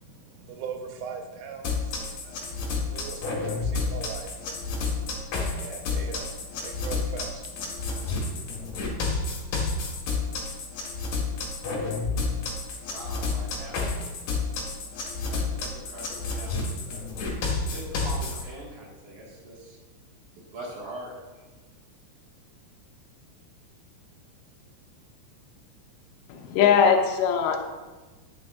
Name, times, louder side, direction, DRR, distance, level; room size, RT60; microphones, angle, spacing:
voice 1, 0.0-8.4, right 6 dB, 85° right, 3 dB, 3.6 m, -41 dB
sound 1, 1.6-18.4, left 4 dB, 60° left, 3.0 m, -30 dB
voice 2, 12.9-13.9 15.3-16.6 16.8-17.0 17.7-19.8 20.4-21.1, right 1 dB, 55° right, -4 dB, 2.7 m, -42 dB
voice 3, 26.3-27.6, left 7 dB, 75° left, 2 dB, 2.9 m, -21 dB
11.0 x 9.8 x 2.5 m, 1.3 s
omnidirectional pair, 5.6 m